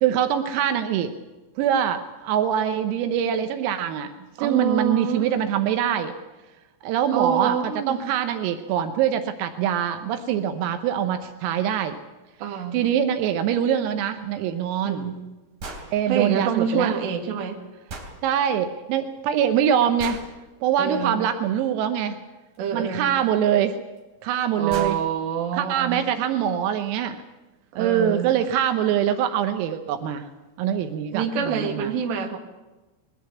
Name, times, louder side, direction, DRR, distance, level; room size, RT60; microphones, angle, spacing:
voice 1, 0.0-1.1 1.6-4.1 4.4-6.1 6.8-7.6 7.9-12.0 12.7-15.1 15.9-16.9 18.2-20.2 20.6-22.2 22.7-23.8 24.2-25.0 25.5-27.2 27.8-30.3 30.6-31.9, right 9 dB, 85° right, 8 dB, 3.7 m, -24 dB
voice 2, 4.4-5.4 7.1-8.0 12.4-12.9 14.8-15.3 16.1-17.6 20.8-21.2 22.6-23.1 24.6-26.0 27.7-28.3 31.1-32.4, right 7 dB, 60° right, 3 dB, 4.0 m, -26 dB
sound 1, 15.6-15.9 17.9-18.1 20.0-20.3 22.5-22.6 24.0-24.1 24.4-24.5 24.7-25.0, right 2 dB, 40° right, 4.4 m, -36 dB
22.0 x 17.5 x 8.4 m, 1.1 s
omnidirectional pair, 6.0 m